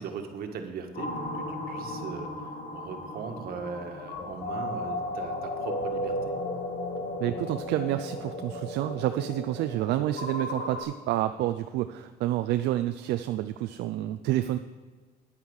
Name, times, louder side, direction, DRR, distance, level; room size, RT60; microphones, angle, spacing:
voice 1, 0.0-2.3 2.7-6.3, right 5 dB, 65° right, 5 dB, 1.6 m, -39 dB
sound 1, 0.9-10.8, left 1 dB, 60° left, 2.6 m, -35 dB
voice 2, 7.2-14.6, right 14 dB, 80° right, 9 dB, 0.5 m, -29 dB
9.9 x 9.2 x 6.4 m, 1.4 s
cardioid pair, 110°, 17 cm